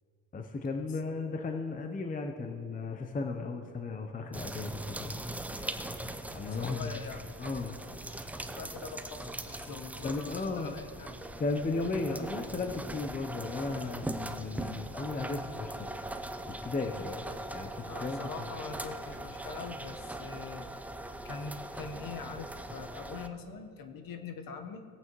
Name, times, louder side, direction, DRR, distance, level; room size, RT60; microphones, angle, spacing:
voice 1, 0.3-5.1 6.3-7.0 7.4-7.8 10.0-10.7 11.4-15.9 16.5-17.2 17.5-18.5, left 3 dB, 15° left, 5 dB, 0.8 m, -35 dB
sound 1, 4.3-23.3, right 1 dB, 5° right, 0.3 m, -41 dB
voice 2, 6.4-7.3 8.5-11.1 17.8-20.7 21.2-24.8, left 5 dB, 45° left, 6 dB, 1.3 m, -43 dB
19.5 x 8.6 x 3.1 m, 2.6 s
supercardioid pair, 90°, 48 cm